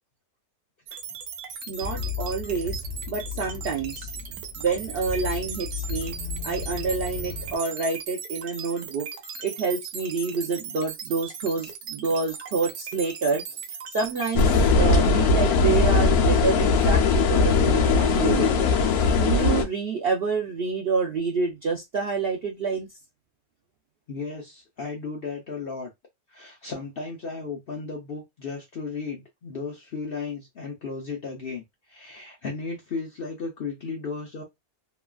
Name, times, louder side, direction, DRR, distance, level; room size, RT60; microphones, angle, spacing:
sound 1, 0.9-14.4, right 6 dB, 80° right, 1.1 m, -38 dB
voice 1, 1.7-2.8 3.1-4.1 4.6-6.2 6.4-9.1 9.4-13.4 13.9-18.7 19.2-22.9, right 4 dB, 65° right, 0.6 m, -28 dB
sound 2, 1.8-7.6, left 6 dB, 45° right, 1.1 m, -35 dB
sound 3, 14.3-19.6, left 4 dB, 75° left, 1.1 m, -20 dB
voice 2, 24.1-25.9 26.3-34.4, left 4 dB, 55° left, 0.6 m, -35 dB
3.0 x 2.3 x 2.3 m
omnidirectional pair, 1.6 m